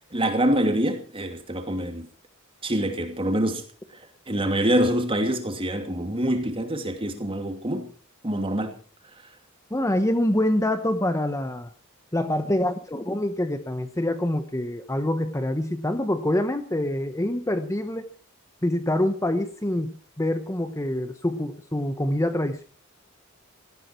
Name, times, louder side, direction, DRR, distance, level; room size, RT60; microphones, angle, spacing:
voice 1, 0.1-2.1 2.6-3.6 4.3-7.9 8.2-8.7, right 1 dB, 25° right, 2.7 m, -25 dB
voice 2, 9.7-11.7 12.1-18.0 18.6-22.6, left 1 dB, 15° left, 1.0 m, -25 dB
18.5 x 14.5 x 4.5 m
head